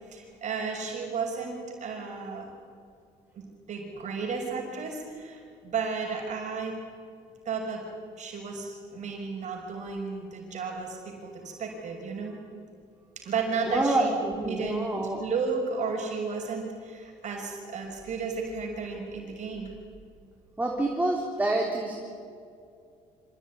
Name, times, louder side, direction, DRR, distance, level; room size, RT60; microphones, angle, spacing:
voice 1, 0.1-2.5 3.3-6.8 7.4-7.8 8.2-12.4 13.2-14.1 14.4-14.9 15.2-19.7, right 5 dB, 55° right, 1 dB, 6.1 m, -33 dB
voice 2, 13.7-15.2 20.6-21.9, right 2 dB, 10° right, 0 dB, 3.5 m, -27 dB
26.5 x 16.5 x 9.9 m, 2.3 s
cardioid pair, 100°, 15 cm